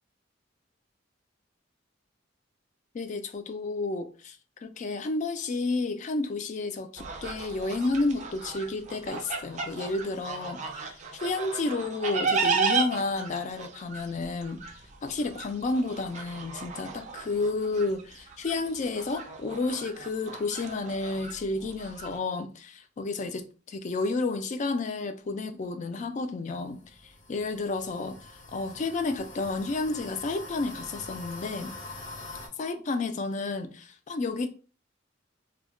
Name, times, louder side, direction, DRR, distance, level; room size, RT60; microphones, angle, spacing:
voice 1, 2.9-14.6 15.0-31.7 32.6-34.5, left 3 dB, 40° left, 0.3 m, -31 dB
sound 1, 7.0-22.2, right 5 dB, 40° right, 0.4 m, -34 dB
sound 2, 26.5-32.5, left 2 dB, 80° left, 0.8 m, -44 dB
2.2 x 2.1 x 3.6 m
head